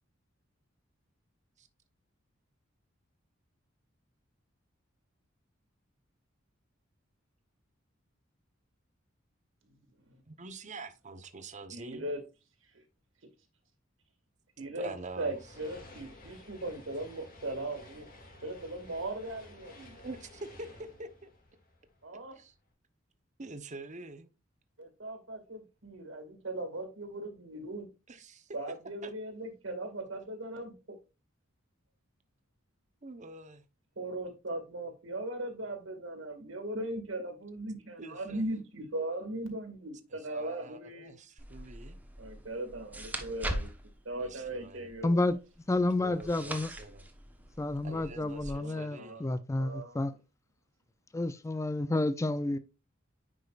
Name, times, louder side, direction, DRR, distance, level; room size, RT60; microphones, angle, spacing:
voice 1, 10.3-12.2 14.6-15.5 20.0-21.3 22.3-22.5 23.4-24.3 28.1-28.8 29.0-29.1 33.0-33.6 38.0-38.6 40.1-42.0 44.2-44.9 46.0-47.1 47.8-49.3, right 3 dB, 40° right, 0.9 m, -46 dB
voice 2, 11.7-12.2 12.7-12.8 14.6-14.9 15.2-18.1 18.4-19.9 22.0-22.4 24.8-27.9 28.5-31.0 34.0-41.1 42.2-43.7 44.0-45.2 47.9-48.3 48.6-49.2 49.6-50.0, right 1 dB, 80° right, 2.0 m, -39 dB
sound 1, 14.9-22.4, left 2 dB, 45° left, 2.1 m, -53 dB
sound 2, 41.4-48.5, right 1 dB, 10° right, 1.0 m, -42 dB
voice 3, 45.0-45.4 45.7-46.7 47.6-50.1 51.1-52.6, left 2 dB, 15° left, 0.4 m, -30 dB
9.7 x 5.1 x 2.4 m
head